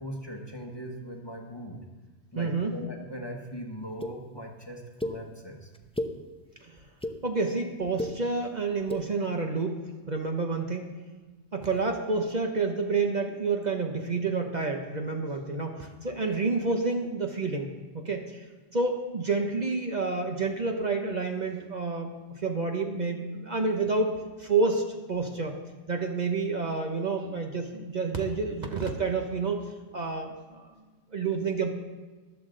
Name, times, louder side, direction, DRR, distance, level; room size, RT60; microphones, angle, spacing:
voice 1, 0.0-1.8 2.3-5.7, equal, 25° left, 1 dB, 1.2 m, -40 dB
voice 2, 2.4-2.7 6.6-6.8 7.2-11.0 11.5-18.4 18.7-22.1 22.4-25.5 25.9-29.6 29.9-30.7 31.1-31.7, right 3 dB, 45° right, 3 dB, 1.0 m, -29 dB
sound 1, 4.0-4.1 5.0-5.1 5.7-6.1 6.8-7.1 7.8-8.1 8.8-9.0, left 1 dB, 5° left, 0.6 m, -32 dB
14.0 x 12.0 x 3.8 m, 1.3 s
omnidirectional pair, 1.1 m